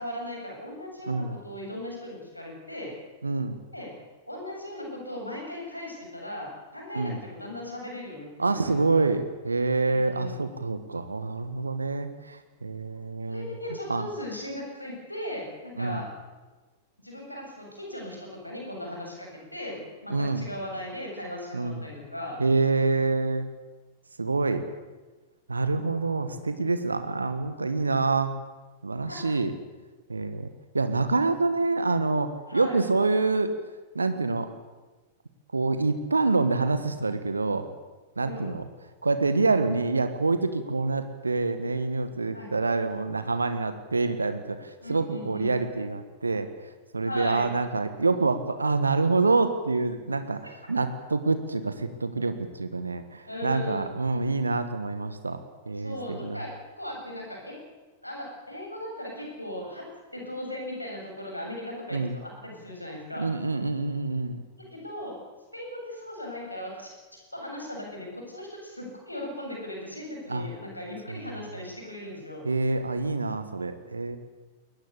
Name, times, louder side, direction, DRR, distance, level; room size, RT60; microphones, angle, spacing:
voice 1, 0.0-3.0 3.7-3.9 4.3-9.0 9.9-10.6 13.2-16.1 17.0-22.4 25.7-26.5 28.9-29.2 32.5-32.8 38.2-38.6 42.3-42.5 44.8-45.5 47.0-47.5 50.4-50.5 53.2-53.9 55.8-57.5 58.0-59.8 60.1-63.3 64.6-65.2 65.5-72.4, left 1 dB, 90° left, 0 dB, 7.8 m, -38 dB
voice 2, 1.1-1.4 3.2-3.6 6.9-7.2 8.4-13.5 13.9-14.1 15.8-16.0 20.1-20.4 21.5-21.9 22.4-23.5 24.2-24.6 25.5-28.3 28.8-29.5 30.1-30.5 30.7-33.6 33.9-34.5 35.5-37.7 38.2-38.7 39.0-55.4 55.7-56.4 61.9-62.1 63.2-64.4 70.3-70.5 71.1-71.4 72.4-74.2, right 3 dB, 80° right, 10 dB, 1.5 m, -26 dB
22.0 x 18.5 x 8.5 m, 1.2 s
figure-of-eight pair, 95°, 0 cm